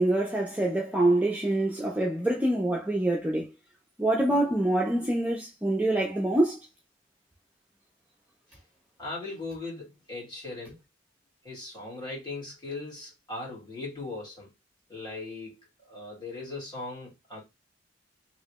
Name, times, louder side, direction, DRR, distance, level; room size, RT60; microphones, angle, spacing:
voice 1, 0.0-3.5 4.0-6.6, right 1 dB, 10° right, 0.5 m, -25 dB
voice 2, 9.0-10.8 11.4-14.5 14.9-15.6 15.9-17.4, left 2 dB, 25° left, 1.8 m, -39 dB
3.1 x 2.9 x 2.9 m
head